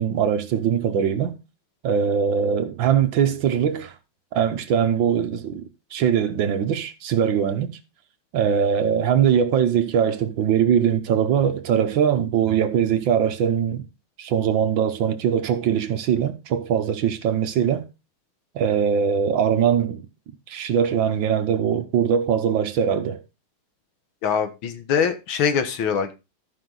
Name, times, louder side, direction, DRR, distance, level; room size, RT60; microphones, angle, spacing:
voice 1, 0.0-1.4 1.8-3.9 4.3-7.8 8.3-13.8 14.2-17.8 18.5-20.0 20.5-23.2, right 8 dB, 70° right, 1.6 m, -21 dB
voice 2, 24.2-26.1, left 7 dB, 75° left, 1.9 m, -23 dB
13.5 x 5.5 x 3.8 m
omnidirectional pair, 2.3 m